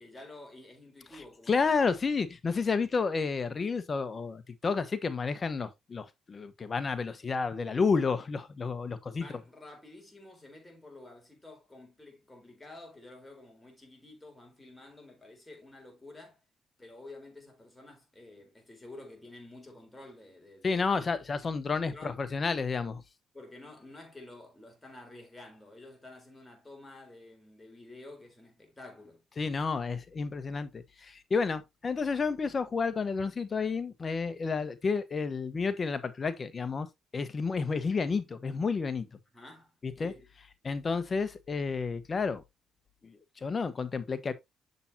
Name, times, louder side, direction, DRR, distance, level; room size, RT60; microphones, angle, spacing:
voice 1, 0.0-2.0 9.1-16.4 16.8-21.1 21.7-22.2 23.3-29.2 39.3-40.3, left 2 dB, 10° left, 3.7 m, -50 dB
voice 2, 1.5-9.3 20.6-23.0 29.4-36.9 37.1-39.1 39.8-40.1 40.6-42.4 43.0-44.3, left 4 dB, 35° left, 1.1 m, -31 dB
7.2 x 6.8 x 2.8 m
cardioid pair, 90°, 0 cm